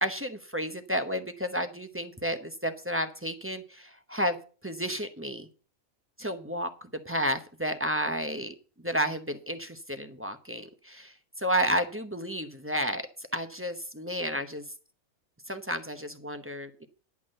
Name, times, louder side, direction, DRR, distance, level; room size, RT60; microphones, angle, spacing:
voice 1, 0.0-4.4 4.6-5.5 6.2-8.5 8.8-14.6 15.5-16.9, equal, 10° right, 8 dB, 0.7 m, -31 dB
11.0 x 6.0 x 7.6 m, 0.38 s
omnidirectional pair, 1.5 m